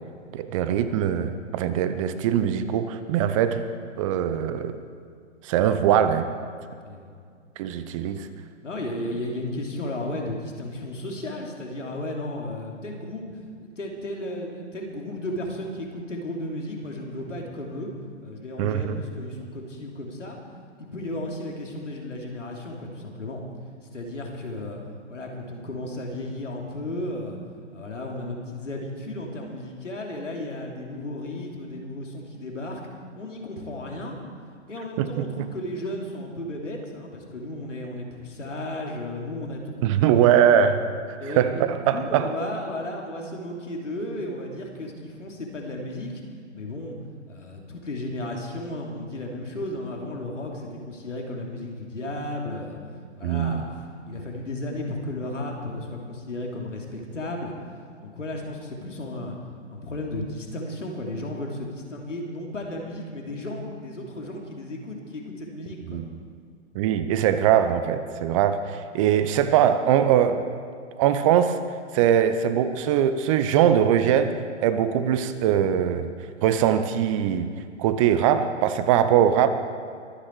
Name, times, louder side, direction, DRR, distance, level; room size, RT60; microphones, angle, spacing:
voice 1, 0.3-3.6 4.0-4.8 5.4-6.3 7.6-8.3 18.6-19.0 35.0-35.1 35.4-35.5 39.8-40.8 41.4-42.3 53.2-53.6 65.9-66.2 66.7-70.4 71.0-71.6 71.9-74.3 74.6-76.1 76.4-77.5 77.8-79.5, right 9 dB, 25° right, 11 dB, 0.7 m, -21 dB
voice 2, 8.6-13.3 13.6-17.9 18.2-20.4 20.8-23.4 23.9-24.8 25.1-27.4 27.7-32.8 33.2-34.2 34.7-40.5 41.2-46.1 46.5-46.9 47.3-52.8 53.2-57.5 58.0-59.3 59.7-66.0, left 1 dB, 85° left, 0 dB, 3.0 m, -34 dB
23.0 x 9.6 x 4.7 m, 2.2 s
figure-of-eight pair, 125°, 36 cm